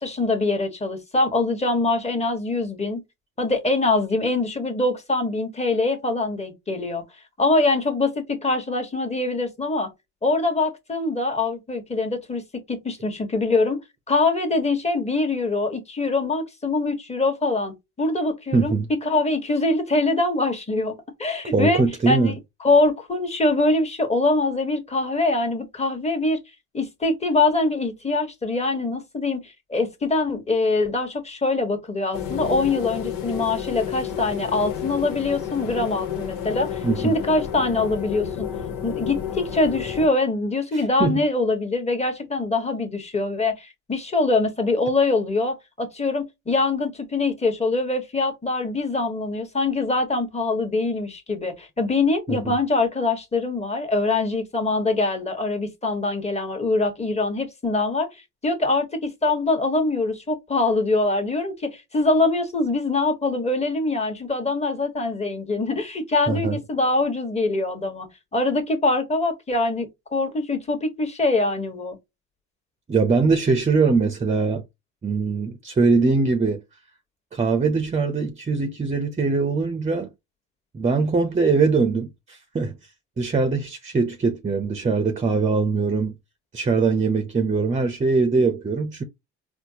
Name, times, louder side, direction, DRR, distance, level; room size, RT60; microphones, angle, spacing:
voice 1, 0.0-3.0 3.4-7.0 7.4-9.9 10.2-13.8 14.1-18.7 19.0-20.9 21.2-22.3 22.6-26.4 26.7-38.5 38.8-58.1 58.4-72.0, left 2 dB, 20° left, 1.3 m, -23 dB
voice 2, 18.5-18.9 21.5-22.3 36.8-37.2 40.7-41.2 52.3-52.5 66.3-66.6 72.9-74.6 75.0-76.6 77.3-80.1 80.7-82.7 83.2-86.1 86.5-89.0, right 4 dB, 20° right, 0.7 m, -22 dB
sound 1, 32.1-40.1, left 9 dB, 85° left, 1.0 m, -31 dB
4.3 x 2.1 x 2.8 m
supercardioid pair, 85°, 33 cm